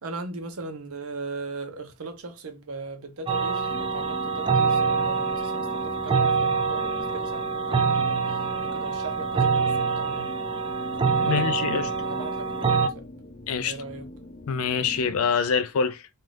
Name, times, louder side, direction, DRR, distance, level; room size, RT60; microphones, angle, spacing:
voice 1, 0.0-10.3 11.2-13.0 13.6-14.1 15.2-15.5, right 3 dB, 75° right, 0.7 m, -39 dB
sound 1, 3.3-12.9, right 5 dB, 25° right, 0.3 m, -25 dB
sound 2, 3.7-15.2, left 1 dB, 40° left, 0.7 m, -42 dB
voice 2, 11.2-12.1 13.5-13.8 14.5-16.1, left 6 dB, 75° left, 0.4 m, -25 dB
2.6 x 2.4 x 3.2 m
head